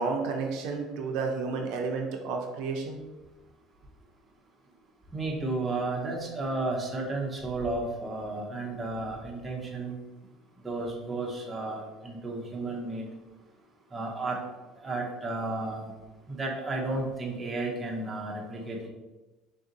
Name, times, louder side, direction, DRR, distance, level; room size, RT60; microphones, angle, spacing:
voice 1, 0.0-3.0, right 4 dB, 65° right, 2 dB, 0.5 m, -31 dB
voice 2, 5.1-10.0 10.6-13.1 13.9-14.4 14.8-15.9 16.3-18.9, right 2 dB, 10° right, -2 dB, 0.6 m, -33 dB
3.5 x 2.7 x 3.8 m, 1.1 s
cardioid pair, 170°, 0 cm